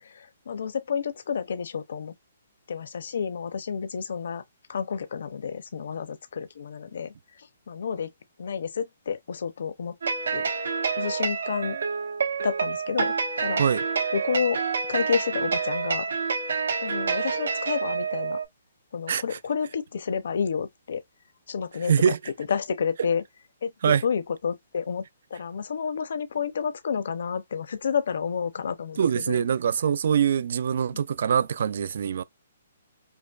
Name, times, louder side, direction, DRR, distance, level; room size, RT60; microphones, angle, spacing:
voice 1, 0.0-2.1 2.7-4.4 4.7-8.1 8.4-10.0 10.3-10.5 11.0-11.8 12.4-13.6 14.1-14.6 14.9-16.1 16.8-18.4 18.9-21.0 21.5-22.1 22.5-23.2 23.6-23.7 24.0-25.0 25.3-29.4 30.9-31.0, left 6 dB, 55° left, 0.6 m, -30 dB
sound 1, 10.0-18.4, right 5 dB, 90° right, 1.2 m, -28 dB
voice 2, 19.1-19.4 21.9-22.2 23.8-24.0 29.0-32.2, right 8 dB, 45° right, 0.3 m, -23 dB
5.3 x 2.1 x 2.3 m
hypercardioid pair, 180°, 0 cm